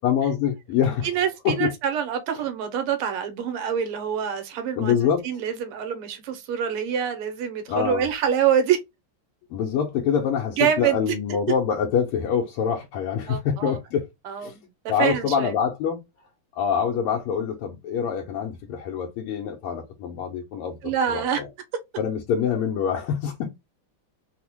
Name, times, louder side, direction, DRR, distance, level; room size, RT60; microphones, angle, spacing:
voice 1, 0.0-1.1 1.4-1.7 4.8-5.2 7.7-8.0 9.5-14.1 14.4-14.5 14.9-16.0 16.6-21.5 22.0-23.5, left 8 dB, 85° left, 1.6 m, -25 dB
voice 2, 1.0-5.0 5.2-8.8 10.5-11.1 13.3-13.8 14.3-15.5 20.8-21.4, right 8 dB, 90° right, 1.7 m, -25 dB
4.1 x 2.0 x 2.8 m
omnidirectional pair, 2.4 m